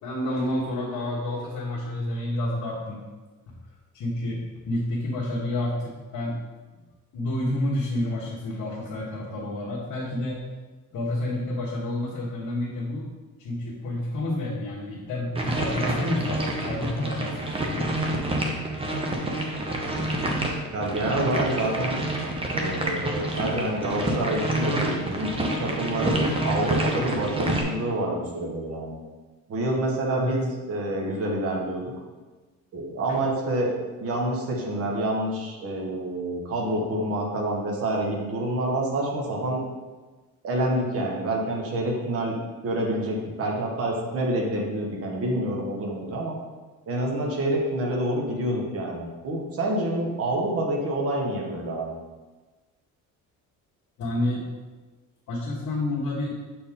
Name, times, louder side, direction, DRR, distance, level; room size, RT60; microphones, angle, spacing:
voice 1, 0.0-3.0 3.9-6.4 7.1-10.4 10.9-13.1 13.4-17.9 30.2-30.3 33.1-33.2 54.0-54.4 55.3-56.3, left 1 dB, 65° left, -6 dB, 1.4 m, -29 dB
sound 1, 15.3-27.6, right 1 dB, 15° right, 0.8 m, -28 dB
voice 2, 20.7-22.0 22.5-29.0 29.5-31.9 32.7-39.6 40.4-42.4 42.6-46.4 46.9-52.0, right 1 dB, 45° right, -1 dB, 1.4 m, -27 dB
7.3 x 4.4 x 3.7 m, 1.3 s
cardioid pair, 150°, 32 cm